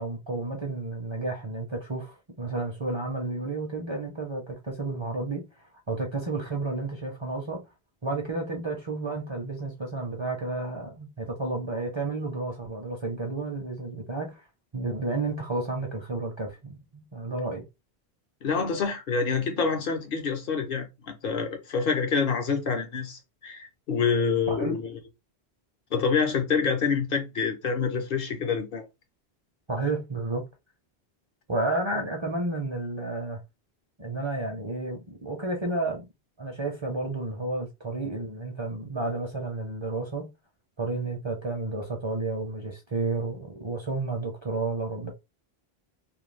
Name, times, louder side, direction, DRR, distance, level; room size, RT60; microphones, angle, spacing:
voice 1, 0.0-7.6 8.0-14.4 14.7-17.6 24.5-24.8 29.7-30.4 31.5-33.4 34.0-36.1 36.4-40.3 40.8-45.1, right 2 dB, 35° right, 0.5 m, -31 dB
voice 2, 18.4-25.0 25.9-28.9, left 5 dB, 60° left, 0.8 m, -27 dB
2.4 x 2.2 x 3.2 m
omnidirectional pair, 1.1 m